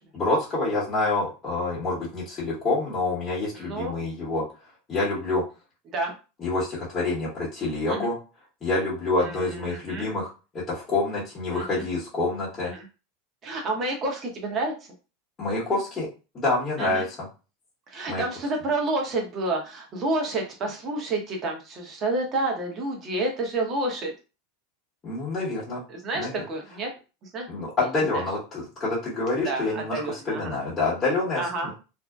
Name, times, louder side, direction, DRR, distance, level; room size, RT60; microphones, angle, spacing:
voice 1, 0.1-4.4 4.9-5.4 6.4-8.2 8.6-10.3 10.5-12.7 15.4-16.1 16.3-17.3 18.1-18.2 25.0-25.8 26.1-26.4 27.5-31.7, left 2 dB, 20° left, -9 dB, 1.0 m, -27 dB
voice 2, 3.5-4.1 5.9-6.1 7.9-8.1 9.2-10.1 11.5-11.9 12.6-12.9 13.4-14.7 16.8-17.1 17.9-24.1 25.9-26.9 27.3-27.5 28.1-28.2 29.4-30.6 31.4-31.7, right 2 dB, 35° right, 1 dB, 0.9 m, -29 dB
2.6 x 2.1 x 2.3 m, 0.32 s
supercardioid pair, 130°, 0 cm